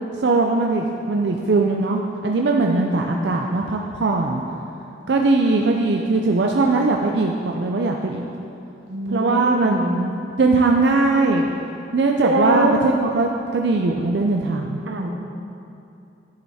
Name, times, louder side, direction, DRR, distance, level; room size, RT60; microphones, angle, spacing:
voice 1, 0.2-4.4 5.1-8.2 9.1-10.1 10.4-11.5 11.9-14.8, right 3 dB, 65° right, 1 dB, 0.5 m, -20 dB
voice 2, 2.6-3.1 8.9-10.0 12.2-12.8 14.9-15.1, right 1 dB, 90° right, 3 dB, 1.0 m, -23 dB
10.0 x 7.9 x 4.2 m, 2.7 s
head